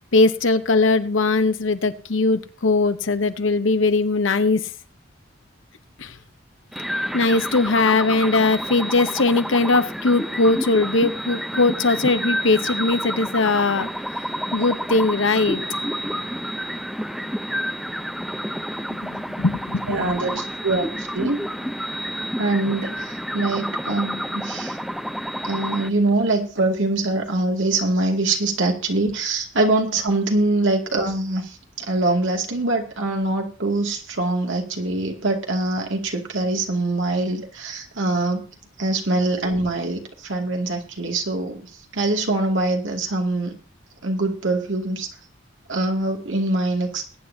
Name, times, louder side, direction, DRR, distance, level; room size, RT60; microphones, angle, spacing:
voice 1, 0.1-4.7 6.0-6.1 7.1-13.9 14.5-15.6 19.0-20.1, left 3 dB, 75° left, 11 dB, 0.9 m, -20 dB
sound 1, 6.7-25.9, equal, ahead, 0.7 m, -29 dB
voice 2, 19.9-21.4 22.4-24.8 25.4-38.4 38.8-43.5 44.0-45.1 45.7-47.0, right 2 dB, 70° right, 2 dB, 2.3 m, -23 dB
21.0 x 9.7 x 2.8 m, 0.37 s
head